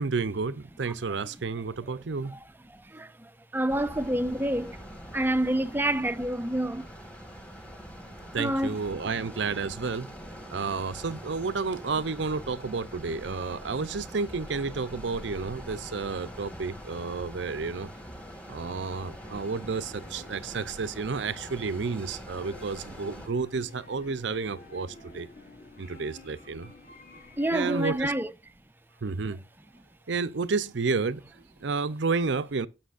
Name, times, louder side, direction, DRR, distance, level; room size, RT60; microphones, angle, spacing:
voice 1, 0.0-2.4 8.3-10.1 10.5-17.9 18.5-25.3 25.8-26.7 27.5-28.1 29.0-29.5 30.1-32.7, right 4 dB, 60° right, 0.6 m, -31 dB
voice 2, 2.3-4.8 5.1-6.9 8.4-8.8 18.2-18.3 27.4-28.3, right 1 dB, 10° right, 0.5 m, -28 dB
sound 1, 3.7-23.3, equal, 5° left, 1.5 m, -44 dB
sound 2, 17.4-28.2, left 3 dB, 50° left, 3.9 m, -52 dB
17.5 x 6.2 x 2.5 m
head